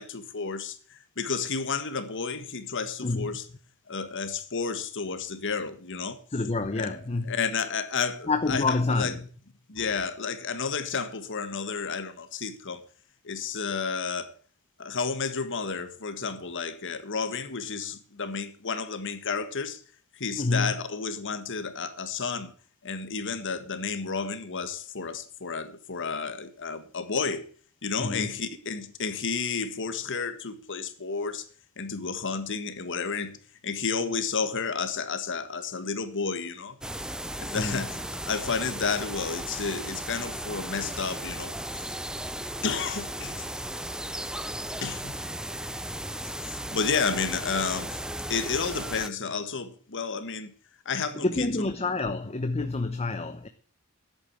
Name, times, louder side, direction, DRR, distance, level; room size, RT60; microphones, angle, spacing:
voice 1, 0.0-3.4 3.9-6.2 6.8-6.9 7.2-9.1 9.7-12.8 13.2-14.3 14.8-19.8 20.1-22.5 22.8-27.5 27.8-31.4 31.8-33.4 33.6-36.8 37.4-41.5 42.6-43.5 44.8-45.1 46.2-48.0 48.3-50.5 50.9-51.5, left 5 dB, 55° left, 1.6 m, -31 dB
voice 2, 6.3-7.4 8.3-9.3 9.8-9.9 20.4-20.7 28.0-28.3 37.6-37.9 45.7-45.9 51.1-53.5, left 3 dB, 30° left, 0.8 m, -28 dB
sound 1, 36.8-49.1, right 1 dB, 5° right, 0.5 m, -36 dB
10.5 x 8.4 x 8.9 m
head